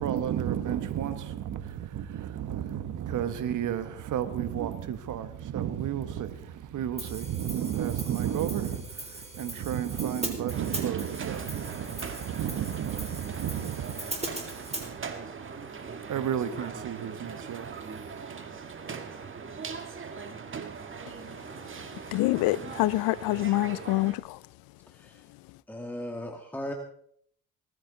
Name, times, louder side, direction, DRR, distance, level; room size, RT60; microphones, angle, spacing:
voice 1, 0.0-15.1 15.4-18.4 18.6-19.0, right 10 dB, 55° right, 1.4 m, -33 dB
Hi-hat, 7.0-14.9, right 2 dB, 20° right, 3.9 m, -40 dB
sound 1, 10.5-24.1, right 5 dB, 35° right, 1.9 m, -40 dB
voice 2, 22.1-24.4, left 19 dB, 75° left, 0.6 m, -26 dB
voice 3, 24.9-25.2 25.7-26.7, left 1 dB, 5° left, 2.0 m, -37 dB
19.0 x 14.5 x 4.1 m
supercardioid pair, 75°, 35 cm